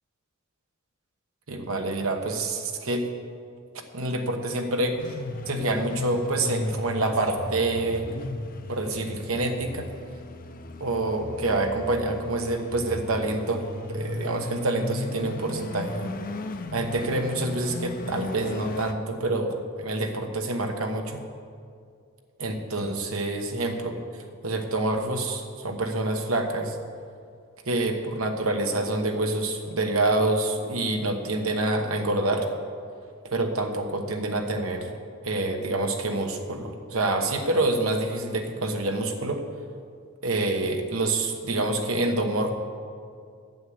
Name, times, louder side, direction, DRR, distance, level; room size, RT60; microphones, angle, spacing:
voice 1, 1.5-3.0 3.9-5.0 5.5-8.1 8.7-9.9 10.8-16.1 16.7-21.2 22.4-24.0 24.4-26.7 27.7-32.5 33.2-34.9 35.2-39.4 40.2-42.5, right 2 dB, 75° right, 4 dB, 1.3 m, -27 dB
sound 1, 5.0-18.9, left 2 dB, 45° left, 0.7 m, -36 dB
9.3 x 8.1 x 7.8 m, 2.3 s
head